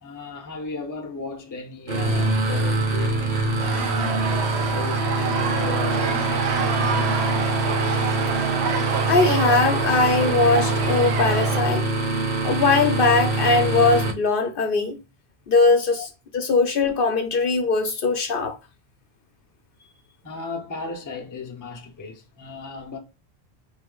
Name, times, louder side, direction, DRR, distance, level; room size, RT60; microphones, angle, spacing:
voice 1, 0.0-4.2 4.7-7.8 16.0-16.1 20.2-23.0, left 4 dB, 20° left, 0.5 m, -36 dB
sound 1, 1.9-14.1, right 2 dB, 45° right, 1.0 m, -24 dB
sound 2, 3.6-11.6, right 6 dB, 80° right, 0.9 m, -28 dB
voice 2, 9.1-11.9 12.4-15.0 15.5-16.1 16.3-18.5, left 3 dB, 60° left, 0.8 m, -20 dB
3.6 x 2.8 x 3.7 m
omnidirectional pair, 1.1 m